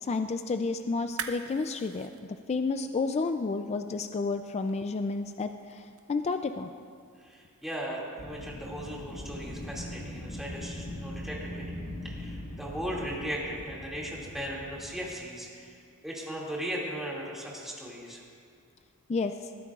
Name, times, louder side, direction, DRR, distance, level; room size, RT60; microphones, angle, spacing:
voice 1, 0.0-2.1 2.5-6.7 19.1-19.5, left 4 dB, 30° left, 7 dB, 0.3 m, -31 dB
sound 1, 1.0-7.8, right 7 dB, 70° right, 0.8 m, -47 dB
voice 2, 7.2-11.7 12.0-15.8 16.0-18.2, equal, ahead, -5 dB, 2.3 m, -37 dB
Wind, 8.2-15.1, left 1 dB, 80° left, 2.1 m, -41 dB
20.0 x 13.5 x 2.4 m, 2.2 s
head